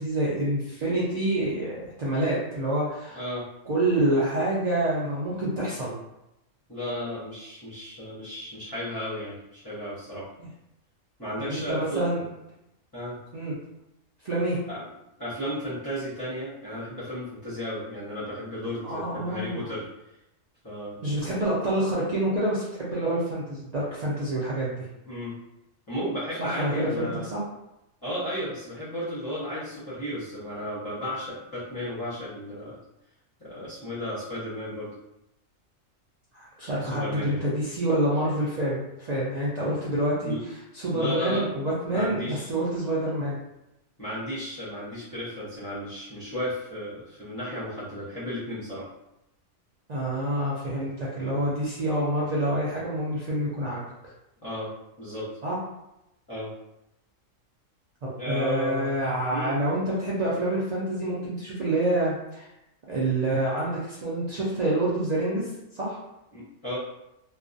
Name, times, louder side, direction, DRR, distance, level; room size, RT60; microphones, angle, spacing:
voice 1, 0.0-3.2 3.7-5.9 10.4-10.5 11.4-12.2 13.3-13.5 14.2-14.6 18.8-19.7 21.0-24.9 26.4-27.4 36.3-43.3 49.9-53.8 55.4-55.6 58.0-62.4 62.9-65.5 65.7-66.0, right 1 dB, 80° right, -8 dB, 0.3 m, -27 dB
voice 2, 3.1-3.5 6.7-10.3 11.2-12.0 12.9-13.2 14.7-14.9 15.2-19.9 20.6-21.0 25.1-25.3 25.9-27.3 28.0-32.8 33.4-34.9 36.8-37.4 40.2-40.4 40.9-41.5 41.9-42.5 44.0-48.9 54.4-54.7 55.0-55.3 56.3-56.5 58.2-58.9 59.3-59.5 66.3-66.8, equal, 25° left, -12 dB, 0.6 m, -34 dB
2.3 x 2.1 x 2.5 m, 0.89 s
omnidirectional pair, 1.4 m